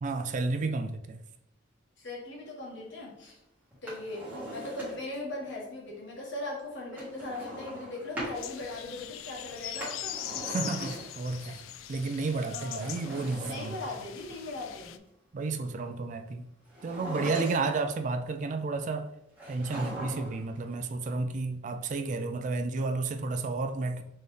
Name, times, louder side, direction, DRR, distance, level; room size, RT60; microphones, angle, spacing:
voice 1, 0.0-1.2 10.4-11.6 11.9-13.8 15.3-16.5 16.8-19.1 19.5-24.0, right 3 dB, 40° right, 0.3 m, -32 dB
voice 2, 2.0-3.4 3.8-10.2 12.5-13.0 13.4-15.0, left 2 dB, 60° left, 1.4 m, -39 dB
Drawer open or close, 3.7-5.2 6.9-8.4 9.6-11.3 12.6-14.2 16.7-17.9 19.4-20.5 20.7-20.8, equal, 10° right, 1.5 m, -40 dB
sound 1, 8.4-15.0, left 11 dB, 85° left, 0.3 m, -41 dB
4.3 x 3.4 x 3.2 m
head